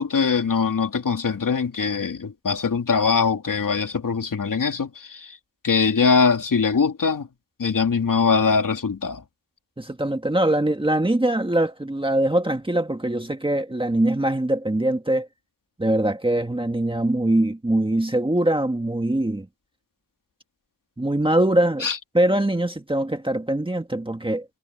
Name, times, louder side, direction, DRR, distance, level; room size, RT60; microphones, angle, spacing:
voice 1, 0.0-5.4 5.6-7.3 7.6-9.2 21.8-22.0, left 5 dB, 45° left, 3.0 m, -22 dB
voice 2, 9.8-15.3 15.8-19.5 21.0-21.9 22.1-24.4, right 1 dB, 10° right, 1.8 m, -22 dB
wide cardioid pair, 140°, 45 cm